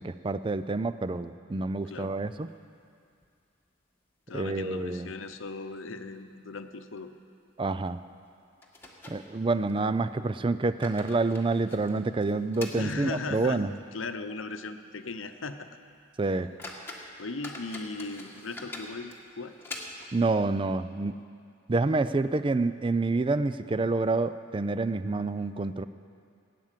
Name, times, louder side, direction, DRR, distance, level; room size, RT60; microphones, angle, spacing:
voice 1, 0.0-2.5 4.3-5.1 7.6-8.0 9.1-13.8 16.2-16.5 20.1-21.2 21.7-25.8, right 3 dB, 25° right, 13 dB, 0.4 m, -28 dB
sound 1, 1.9-2.8 3.2-3.3 3.6-3.7 4.3-4.8 5.1-5.3 5.9-6.0 6.4-6.5 7.9-8.0 8.6-9.8 10.5-13.7 14.0-14.1 14.7-14.8 15.2-15.4 15.9-16.0 16.4-20.3, left 2 dB, 10° left, 1.5 m, -45 dB
voice 2, 4.3-7.1 12.7-13.6 13.9-15.7 17.2-19.6, left 3 dB, 75° left, 8 dB, 0.8 m, -37 dB
17.5 x 9.4 x 7.4 m, 2.4 s
head